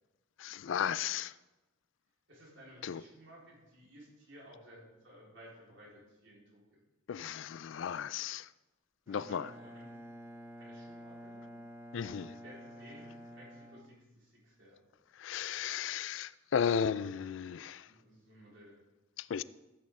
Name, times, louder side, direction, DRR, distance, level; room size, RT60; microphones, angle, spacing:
voice 1, 0.4-1.3 2.8-3.0 7.1-8.5 9.1-9.5 11.9-12.4 15.2-17.9 19.2-19.4, left 7 dB, 70° left, 0.3 m, -35 dB
voice 2, 2.3-6.8 9.2-9.9 10.6-11.4 12.4-14.8 17.8-18.8, equal, 70° right, 4.1 m, -56 dB
Bowed string instrument, 9.1-14.6, equal, 10° right, 0.7 m, -50 dB
15.0 x 8.4 x 3.7 m
head